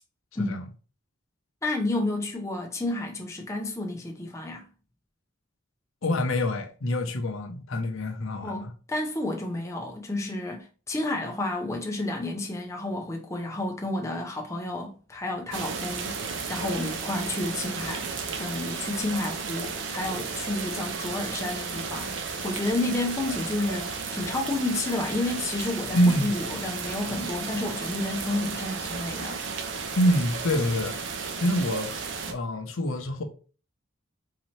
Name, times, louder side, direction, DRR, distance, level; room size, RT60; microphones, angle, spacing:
voice 1, 0.3-0.6 6.0-8.7 25.9-26.3 30.0-32.0 32.3-33.2, equal, 75° left, 0.7 m, -26 dB
voice 2, 1.6-4.7 8.4-18.1 18.4-29.4, left 2 dB, 15° left, 0.5 m, -31 dB
sound 1, 15.5-32.3, right 5 dB, 60° right, 0.6 m, -34 dB
4.0 x 2.8 x 3.1 m
head